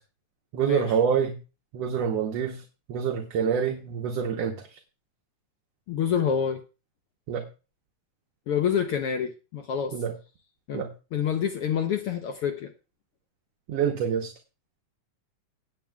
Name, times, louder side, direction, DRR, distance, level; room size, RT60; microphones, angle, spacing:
voice 1, 0.5-1.4 1.7-2.6 2.9-4.5 7.3-7.4 9.9-10.1 10.7-10.9 13.7-14.3, right 7 dB, 65° right, 2 dB, 2.0 m, -26 dB
voice 2, 5.9-6.6 8.5-10.0 10.7-10.8 11.1-12.7, left 8 dB, 65° left, 5 dB, 1.5 m, -27 dB
17.5 x 9.0 x 2.3 m, 0.31 s
omnidirectional pair, 3.4 m